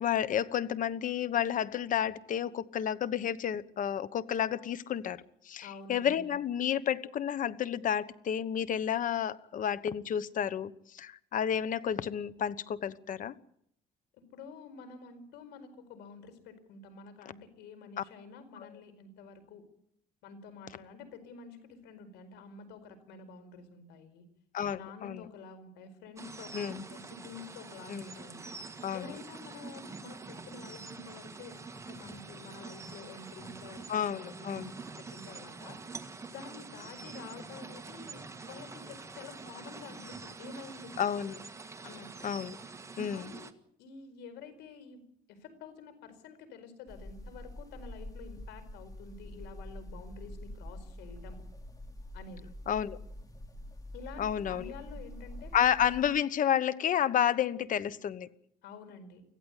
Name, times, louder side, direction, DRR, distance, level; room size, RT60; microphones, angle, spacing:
voice 1, 0.0-13.3 18.0-18.1 18.6-18.7 24.5-25.3 26.5-26.8 27.9-28.1 28.8-29.1 33.9-34.7 41.0-41.4 42.2-42.6 43.0-43.3 52.7-53.0 54.2-54.7 55.5-58.3, left 9 dB, 50° left, 16 dB, 1.2 m, -31 dB
voice 2, 5.6-6.3 14.3-19.6 20.2-24.2 24.7-28.4 28.9-31.6 31.9-34.7 35.0-35.8 36.3-40.9 41.8-42.1 43.1-43.5 43.8-45.0 45.3-51.4 52.1-52.5 53.9-55.5 58.6-59.2, left 4 dB, 85° left, 9 dB, 4.7 m, -49 dB
sound 1, 26.2-43.5, right 4 dB, 15° right, 1.6 m, -46 dB
sound 2, 46.9-56.0, left 1 dB, 20° left, 2.8 m, -46 dB
25.0 x 15.5 x 8.3 m, 0.70 s
cardioid pair, 110°, 17 cm